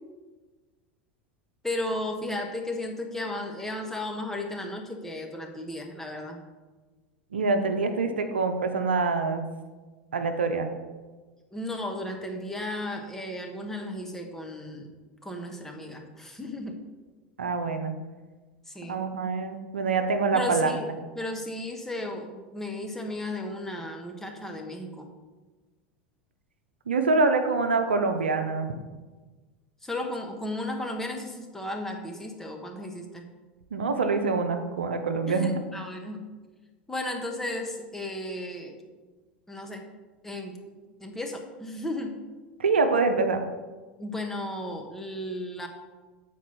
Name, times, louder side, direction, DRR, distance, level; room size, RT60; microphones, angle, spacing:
voice 1, 1.6-6.4 11.5-14.9 15.2-16.8 18.7-19.0 20.3-20.9 21.1-25.1 29.8-33.3 35.2-36.2 36.9-38.8 39.5-39.9 40.2-42.2 44.0-45.7, left 1 dB, 5° left, 2 dB, 1.1 m, -34 dB
voice 2, 7.3-9.4 10.1-10.7 17.4-17.9 18.9-20.7 26.9-28.7 33.7-35.5 42.6-43.4, right 4 dB, 80° right, 6 dB, 0.6 m, -25 dB
7.4 x 4.5 x 4.3 m, 1.3 s
hypercardioid pair, 90°, 6 cm